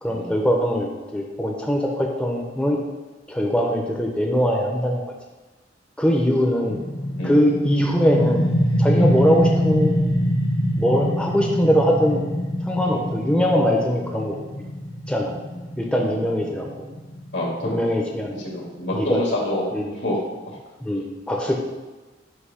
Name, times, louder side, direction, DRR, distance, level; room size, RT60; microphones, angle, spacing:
voice 1, 0.0-2.8 3.3-5.0 6.0-6.8 7.2-8.4 8.8-9.9 10.8-12.2 12.7-14.4 15.1-15.4 15.8-16.7 17.6-18.3 18.9-19.2 19.7-19.9 20.8-21.5, equal, 5° left, 0 dB, 0.6 m, -21 dB
sound 1, 6.7-18.1, equal, 60° left, 1.5 m, -24 dB
voice 2, 17.3-17.8 18.4-19.7 20.0-20.2, left 1 dB, 75° left, -3 dB, 2.1 m, -27 dB
8.2 x 2.7 x 5.6 m, 1.2 s
head